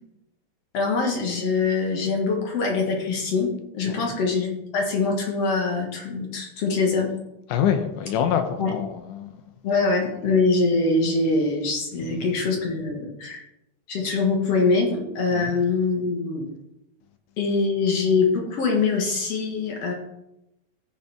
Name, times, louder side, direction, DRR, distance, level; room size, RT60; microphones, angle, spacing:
voice 1, 0.7-7.1 8.6-8.7 9.6-13.4 13.9-16.4 17.4-19.9, left 4 dB, 60° left, 1 dB, 1.8 m, -23 dB
voice 2, 3.9-4.2 7.5-9.4 12.0-12.3 15.3-15.6, left 8 dB, 80° left, 7 dB, 1.9 m, -26 dB
15.0 x 5.5 x 3.4 m, 0.90 s
omnidirectional pair, 4.2 m